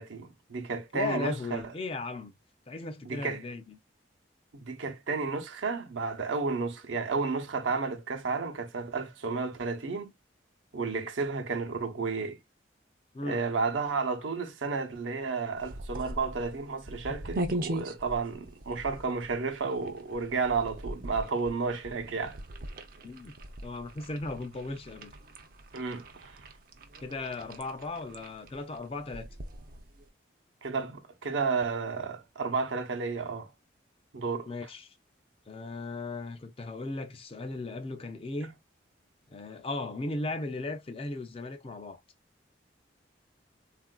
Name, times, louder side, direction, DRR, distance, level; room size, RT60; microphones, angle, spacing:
voice 1, 0.0-1.6 3.0-3.4 4.5-10.1 10.7-12.4 13.2-22.4 25.7-26.4 30.6-33.5 34.1-34.5, right 4 dB, 85° right, 0.7 m, -32 dB
voice 2, 0.9-2.3 2.7-3.8 13.1-13.4 23.0-23.3 23.6-25.1 27.0-29.3 34.5-34.9 35.5-38.6 39.3-42.0, left 2 dB, 30° left, 0.4 m, -36 dB
sound 1, 15.6-30.1, right 1 dB, 50° right, 0.5 m, -41 dB
3.6 x 2.5 x 2.2 m
head